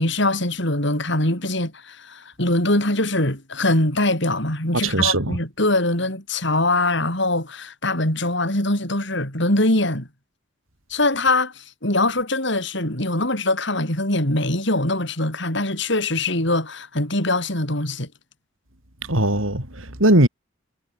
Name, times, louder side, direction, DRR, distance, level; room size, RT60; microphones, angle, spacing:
voice 1, 0.0-10.1 10.9-18.1, left 2 dB, 60° left, 7.9 m, -22 dB
voice 2, 4.8-5.4 19.1-20.3, right 1 dB, 85° right, 7.3 m, -19 dB
head